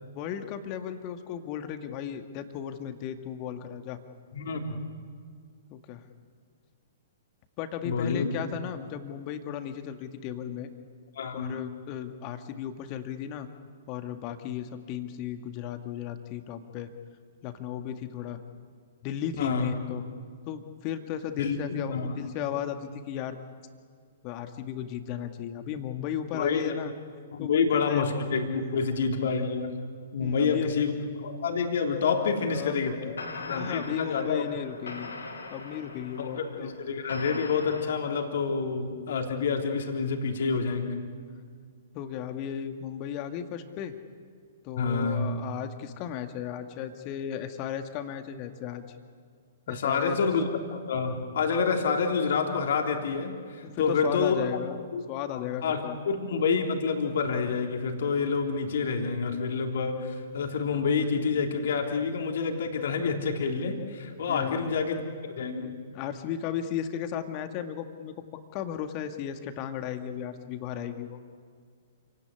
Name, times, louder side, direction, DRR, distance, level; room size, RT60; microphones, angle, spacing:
voice 1, 0.1-4.0 5.7-6.0 7.6-10.7 11.3-13.5 13.9-16.9 17.4-18.4 19.0-20.0 20.5-23.4 24.2-26.9 27.4-28.1 30.2-30.7 32.2-35.1 35.5-36.8 41.9-43.9 44.6-48.8 49.7-50.2 53.6-56.0 64.3-64.7 65.9-71.2, left 9 dB, 35° left, 7 dB, 2.0 m, -35 dB
voice 2, 4.3-4.8 7.8-8.3 11.1-11.6 19.4-19.7 21.4-22.1 26.3-26.7 27.3-29.8 30.1-30.9 31.2-33.0 33.5-34.4 36.2-41.0 44.8-45.3 49.7-54.5 54.9-55.0 55.3-65.0 65.2-65.8, left 5 dB, 55° left, 3 dB, 3.4 m, -28 dB
sound 1, 33.2-37.8, left 3 dB, 70° left, 4.8 m, -41 dB
28.5 x 17.5 x 9.8 m, 2.1 s
figure-of-eight pair, 115°, 0 cm